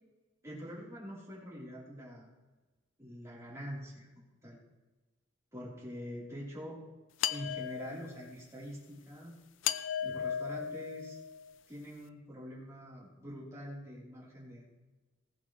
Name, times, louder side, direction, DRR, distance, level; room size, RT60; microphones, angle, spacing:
voice 1, 0.4-2.3 3.0-4.6 5.5-6.8 7.3-9.4 10.0-11.2 11.7-14.6, equal, 15° right, -8 dB, 4.6 m, -45 dB
sound 1, 7.2-8.3 9.6-11.5, left 9 dB, 75° left, 0.6 m, -36 dB
19.5 x 11.5 x 3.5 m, 1.2 s
head